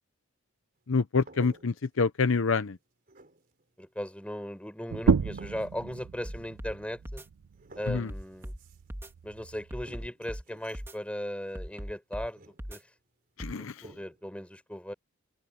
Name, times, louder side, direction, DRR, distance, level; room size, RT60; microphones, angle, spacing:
voice 1, 0.9-2.8 7.9-8.1 13.4-13.9, left 4 dB, 60° left, 0.6 m, -27 dB
sound 1, 1.2-2.1 2.4-2.8 3.1-3.7 5.2-5.9 7.0-7.1 7.4-9.0 9.8-10.9 12.3-13.0 13.8-14.3, right 2 dB, 40° right, 3.8 m, -54 dB
voice 2, 3.8-7.2 7.8-8.5 9.2-12.9 13.6-14.9, equal, 5° left, 5.3 m, -38 dB
sound 2, 4.9-10.1, right 5 dB, 75° right, 0.4 m, -32 dB
sound 3, 6.2-6.7 7.0-7.3 7.9-8.6 8.9-9.1 9.7-10.4 10.7-11.0 11.5-12.3 12.6-12.8 13.4-13.6, equal, 10° right, 2.2 m, -39 dB
open air
head